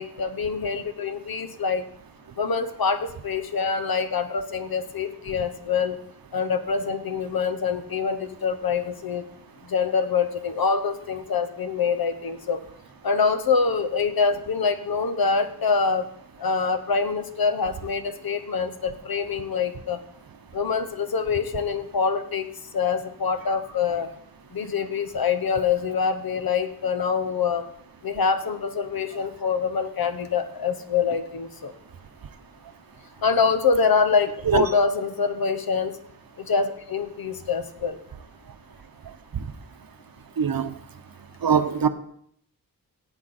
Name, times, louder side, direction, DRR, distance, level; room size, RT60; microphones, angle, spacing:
voice 1, 0.0-1.8 2.4-6.0 6.3-9.2 9.7-12.6 13.0-16.1 16.4-20.0 20.5-22.5 22.7-24.1 24.5-27.6 28.0-31.7 33.2-35.9 36.4-38.0, left 5 dB, 70° left, 1.1 m, -25 dB
voice 2, 40.4-40.7 41.4-41.9, right 7 dB, 70° right, 1.0 m, -21 dB
16.5 x 8.3 x 4.3 m
wide cardioid pair, 110°, 37 cm